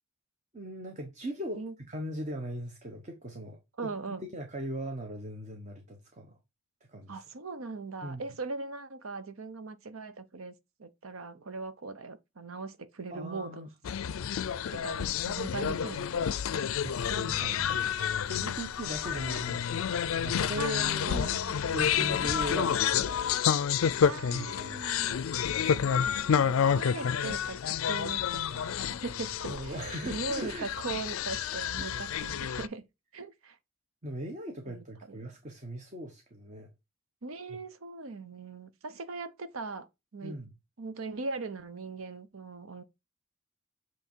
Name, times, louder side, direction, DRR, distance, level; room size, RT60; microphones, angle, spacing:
voice 1, 0.5-1.6 1.9-3.6 4.1-6.4 6.9-7.2 8.0-8.2 13.1-13.7 14.6-14.7 16.8-21.3 21.7-23.3 24.1-25.2 29.5-30.7 31.8-31.9 34.0-36.7 37.5-37.6 40.2-40.5, right 1 dB, 35° right, 1.0 m, -39 dB
voice 2, 3.8-4.2 7.1-10.5 10.8-13.7 14.8-16.3 20.6-21.6 24.0-25.2 26.0-32.8 33.1-33.6 34.7-35.2 37.2-39.9 40.1-40.4 40.8-42.8, right 3 dB, 90° right, 0.8 m, -40 dB
sound 1, 13.8-32.7, left 8 dB, 85° left, 0.4 m, -29 dB
7.9 x 3.1 x 4.5 m
head